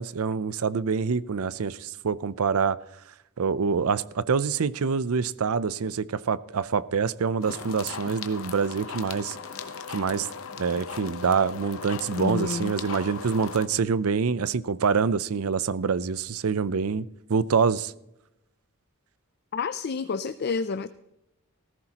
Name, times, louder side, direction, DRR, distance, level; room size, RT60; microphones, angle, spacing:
voice 1, 0.0-2.8 3.4-9.4 9.9-10.3 10.6-17.9, right 5 dB, 75° right, 18 dB, 0.5 m, -26 dB
sound 1, 7.4-13.7, left 5 dB, 65° left, 0.9 m, -38 dB
voice 2, 12.2-12.7 19.5-20.9, left 5 dB, 50° left, 12 dB, 0.4 m, -29 dB
17.0 x 15.0 x 2.9 m, 0.88 s
head